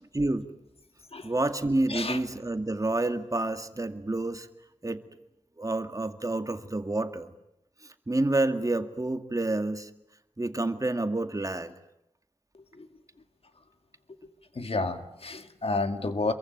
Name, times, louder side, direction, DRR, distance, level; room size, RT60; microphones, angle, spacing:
voice 1, 0.0-0.5 1.2-4.5 4.8-5.0 5.6-7.3 7.8-9.9 10.4-11.7, right 2 dB, 30° right, 8 dB, 2.1 m, -29 dB
voice 2, 1.9-2.2 12.5-12.9 14.5-16.3, left 3 dB, 60° left, 8 dB, 2.2 m, -31 dB
27.5 x 23.0 x 9.3 m, 0.83 s
wide cardioid pair, 70°, 11 cm